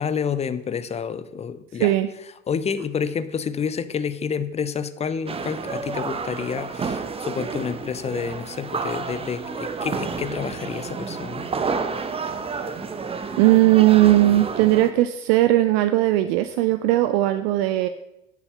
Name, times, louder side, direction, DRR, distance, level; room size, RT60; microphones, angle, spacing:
voice 1, 0.0-1.9 2.5-11.5, left 6 dB, 15° left, 14 dB, 0.5 m, -29 dB
sound 1, 5.3-14.9, right 4 dB, 15° right, 0.8 m, -30 dB
voice 2, 13.4-17.9, right 15 dB, 50° right, 11 dB, 0.6 m, -18 dB
8.5 x 7.0 x 6.9 m, 0.88 s
figure-of-eight pair, 70°, 40 cm